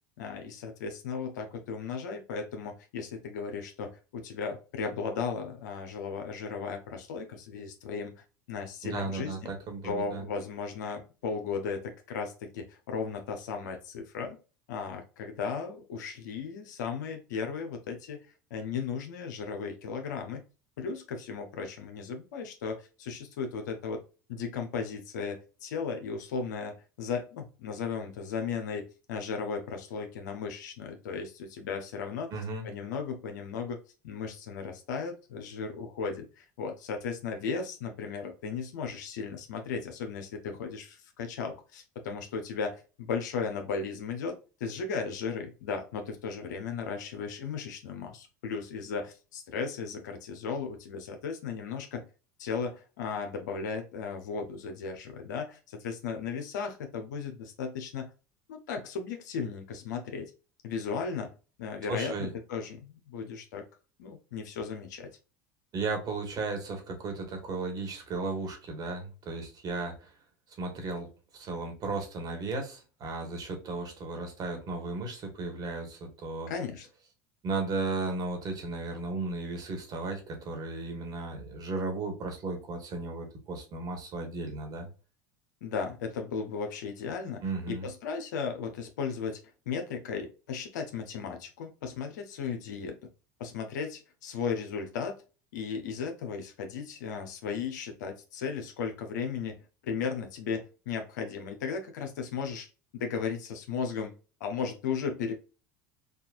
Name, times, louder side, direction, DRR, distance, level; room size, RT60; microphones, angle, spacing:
voice 1, 0.2-8.1 8.5-9.4 9.8-14.4 14.7-18.2 18.5-20.4 20.8-24.0 24.3-32.3 32.6-33.8 34.0-52.0 52.4-58.1 58.5-60.3 60.6-61.3 61.6-63.6 64.0-65.1 76.5-76.9 85.6-89.4 89.7-93.0 93.4-95.2 95.5-102.7 102.9-104.1 104.4-105.3, left 5 dB, 85° left, 5 dB, 0.8 m, -36 dB
voice 2, 8.8-10.2 32.3-32.7 61.9-62.3 65.7-70.1 70.6-71.1 71.3-76.5 77.4-84.9 87.4-87.9, right 3 dB, 45° right, 3 dB, 1.5 m, -35 dB
3.9 x 2.5 x 2.5 m, 0.33 s
supercardioid pair, 95°, 9 cm